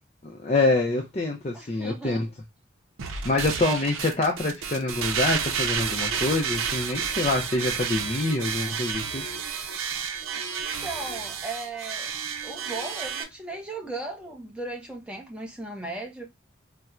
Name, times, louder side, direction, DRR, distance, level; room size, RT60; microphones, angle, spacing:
voice 1, 0.2-2.3 3.2-9.2, left 2 dB, 30° left, 0.4 m, -26 dB
voice 2, 1.5-2.2 10.6-12.1 12.4-16.2, right 2 dB, 5° right, 0.7 m, -36 dB
sound 1, 3.0-13.2, right 6 dB, 90° right, 0.5 m, -31 dB
4.2 x 2.1 x 2.4 m
head